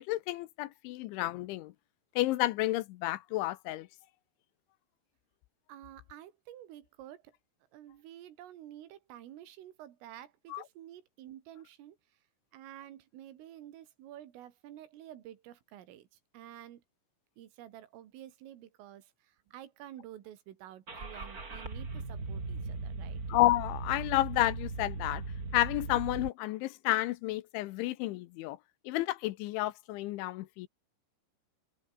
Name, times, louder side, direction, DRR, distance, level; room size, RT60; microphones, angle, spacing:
voice 1, 0.0-1.7 2.2-3.9 10.5-10.6 23.3-25.2 25.5-28.6 28.9-30.7, left 17 dB, 80° left, 3.0 m, -31 dB
voice 2, 5.7-7.3 7.7-12.0 12.5-16.8 17.4-23.2, right 12 dB, 85° right, 4.7 m, -50 dB
Car / Engine starting, 20.9-26.3, right 3 dB, 20° right, 3.1 m, -39 dB
omnidirectional pair, 5.7 m